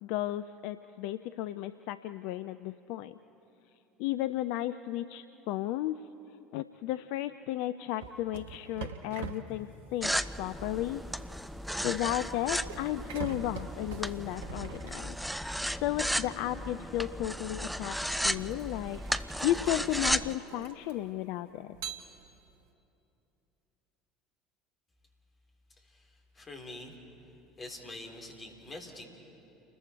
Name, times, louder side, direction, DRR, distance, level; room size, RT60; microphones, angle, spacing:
voice 1, 0.0-3.2 4.0-6.1 6.5-10.1 10.4-11.0 11.8-15.2 15.8-21.8, left 14 dB, 55° left, 12 dB, 0.4 m, -34 dB
sound 1, 8.0-15.6 17.0-17.2 17.8-21.2 21.7-22.6, right 6 dB, 65° right, 1.1 m, -45 dB
sound 2, 10.0-20.4, equal, ahead, 0.5 m, -35 dB
voice 2, 25.8-27.0 27.6-29.0, left 2 dB, 25° left, 1 dB, 4.1 m, -45 dB
29.5 x 21.0 x 4.7 m, 2.9 s
figure-of-eight pair, 65°, 0 cm